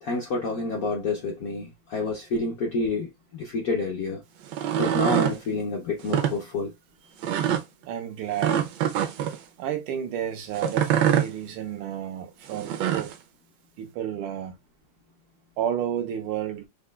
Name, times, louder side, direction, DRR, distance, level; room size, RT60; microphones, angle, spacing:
voice 1, 0.0-4.2 4.8-6.7, left 3 dB, 75° left, 0.8 m, -29 dB
sound 1, 4.4-5.4 6.0-6.3 7.2-7.6 8.4-9.4 10.5-11.3 12.5-13.1, right 10 dB, 75° right, 1.1 m, -24 dB
voice 2, 7.9-8.7 9.6-13.1 13.8-14.6 15.6-16.7, right 10 dB, 90° right, 1.7 m, -31 dB
5.3 x 2.2 x 2.2 m
omnidirectional pair, 2.3 m